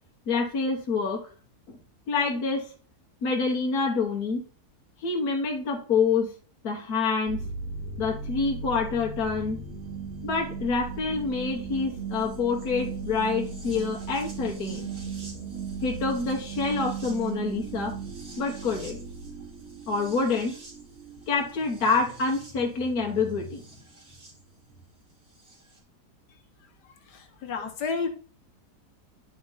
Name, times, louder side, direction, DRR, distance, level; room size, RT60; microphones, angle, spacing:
voice 1, 0.3-1.2 2.1-2.7 3.2-4.4 5.0-6.3 6.6-7.4 8.0-9.6 10.2-14.9 15.8-17.9 18.4-19.0 19.9-20.6 21.3-23.6, left 4 dB, 65° left, -1 dB, 1.8 m, -27 dB
sound 1, 7.3-24.3 25.5-25.6, right 5 dB, 45° right, 2.6 m, -37 dB
voice 2, 27.0-28.1, left 5 dB, 80° left, 6 dB, 1.7 m, -31 dB
10.5 x 4.0 x 3.9 m, 0.38 s
omnidirectional pair, 1.8 m